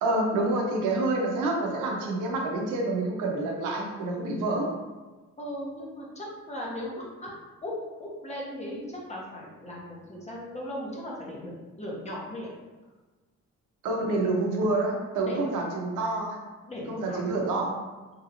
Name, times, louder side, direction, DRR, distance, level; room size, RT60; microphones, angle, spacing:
voice 1, 0.0-4.7 13.8-16.4 16.9-17.7, right 2 dB, 90° right, 0 dB, 0.7 m, -27 dB
voice 2, 5.4-7.3 7.6-7.7 8.0-12.5 15.3-15.4 16.6-17.5, left 1 dB, 20° left, -4 dB, 0.9 m, -37 dB
2.9 x 2.8 x 2.5 m, 1.3 s
cardioid pair, 90°, 30 cm